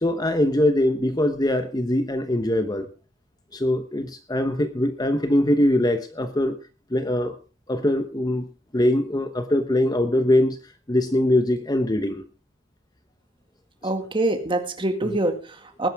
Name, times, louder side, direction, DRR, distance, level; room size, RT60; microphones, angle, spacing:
voice 1, 0.0-2.9 3.5-6.6 6.9-7.4 7.7-8.5 8.7-10.6 10.9-12.2 15.0-15.1, left 1 dB, 20° left, 0.9 m, -22 dB
voice 2, 13.8-15.9, right 2 dB, 25° right, 2.1 m, -25 dB
20.0 x 10.5 x 3.6 m
head